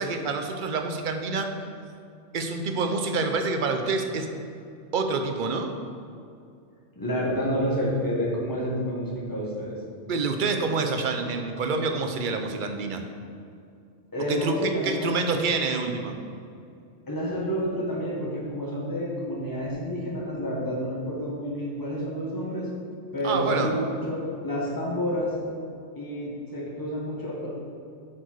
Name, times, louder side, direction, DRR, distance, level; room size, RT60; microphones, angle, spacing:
voice 1, 0.0-1.5 2.3-4.3 4.9-5.7 10.1-13.0 14.3-16.2 23.2-23.7, right 4 dB, 55° right, 5 dB, 0.6 m, -27 dB
voice 2, 6.9-9.8 14.1-15.4 17.1-22.7 23.1-25.3 25.9-27.5, equal, 15° left, -6 dB, 1.5 m, -29 dB
8.0 x 4.5 x 4.6 m, 2.4 s
omnidirectional pair, 1.2 m